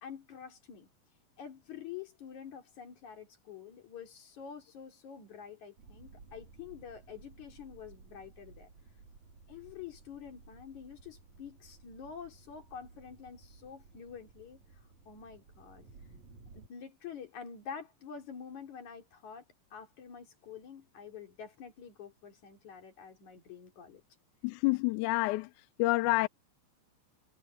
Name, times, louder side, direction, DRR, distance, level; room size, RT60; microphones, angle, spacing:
voice 1, 0.0-0.9 1.4-8.7 9.5-14.6 15.1-15.9 16.5-19.4 19.7-24.0, left 7 dB, 75° left, 4.5 m, -47 dB
sound 1, 5.8-16.7, right 4 dB, 70° right, 4.7 m, -57 dB
voice 2, 24.4-26.3, left 21 dB, 90° left, 2.0 m, -29 dB
omnidirectional pair, 3.4 m